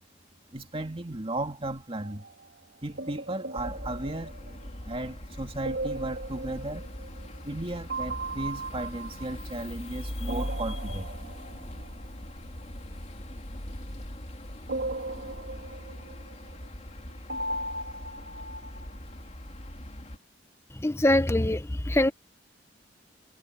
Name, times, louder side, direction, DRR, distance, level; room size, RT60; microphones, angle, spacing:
voice 1, 0.5-2.2 2.8-4.3 4.8-6.8 7.4-11.3, right 1 dB, 30° right, 2.3 m, -35 dB
sound 1, 1.9-2.5 3.0-5.0 5.6-7.6 7.9-9.9 10.3-12.1 14.7-16.6 17.3-19.3, right 2 dB, 70° right, 3.2 m, -37 dB
sound 2, 3.6-20.2, left 1 dB, 40° left, 3.0 m, -40 dB
voice 2, 20.7-22.1, left 1 dB, 15° left, 0.8 m, -24 dB
head